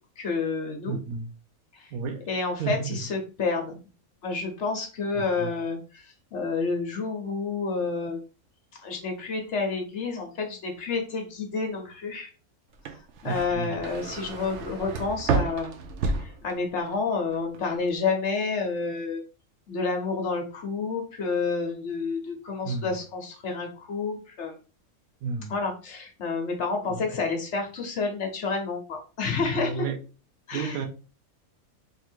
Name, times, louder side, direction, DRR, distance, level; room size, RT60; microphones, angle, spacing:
voice 1, 0.2-1.0 1.7-1.9 2.3-3.7 4.2-6.1 6.3-8.2 8.8-12.3 13.2-15.8 16.2-19.2 19.7-24.6 25.5-29.9 30.5-30.8, left 4 dB, 55° left, 1.1 m, -29 dB
voice 2, 0.9-1.3 1.9-2.3 2.6-3.0 5.1-5.5 13.2-13.8 22.6-22.9 25.2-25.5 26.9-27.0 29.5-30.0 30.5-30.9, right 5 dB, 80° right, 1.1 m, -32 dB
sound 1, 12.7-17.0 17.3-17.9, right 4 dB, 65° right, 0.8 m, -31 dB
3.3 x 2.6 x 4.4 m
omnidirectional pair, 1.5 m